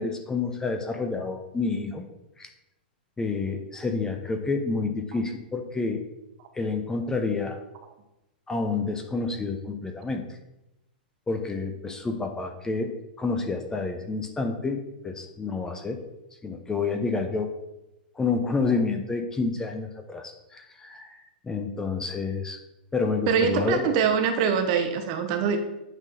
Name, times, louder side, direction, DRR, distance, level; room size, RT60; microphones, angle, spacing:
voice 1, 0.0-2.0 2.4-2.5 3.2-6.0 6.5-7.6 8.5-10.2 11.3-16.0 16.4-17.5 18.2-22.6 22.9-23.9, left 4 dB, 10° left, 5 dB, 0.6 m, -29 dB
voice 2, 23.3-25.6, right 6 dB, 40° right, 6 dB, 1.0 m, -23 dB
8.9 x 3.8 x 4.2 m, 0.94 s
figure-of-eight pair, 100°, 5 cm